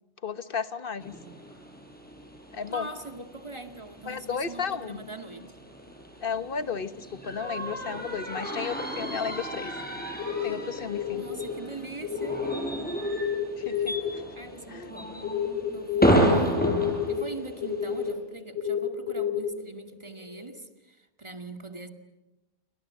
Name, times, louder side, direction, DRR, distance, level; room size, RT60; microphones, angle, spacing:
voice 1, 0.2-1.1 2.5-2.9 4.1-5.1 6.2-9.7 10.4-11.2 13.6-14.2 14.7-14.9, left 6 dB, 55° left, 12 dB, 1.5 m, -33 dB
sound 1, 1.0-18.1, right 1 dB, 10° left, 6.0 m, -32 dB
voice 2, 2.7-5.5 11.1-12.7 14.3-15.2 15.7-16.8 17.1-21.9, right 2 dB, 25° right, 6 dB, 2.4 m, -42 dB
sound 2, 10.2-11.7 12.0-12.6 13.1-19.5 20.2-20.5, left 9 dB, 75° left, 3.0 m, -30 dB
29.0 x 25.0 x 7.7 m, 0.94 s
omnidirectional pair, 1.1 m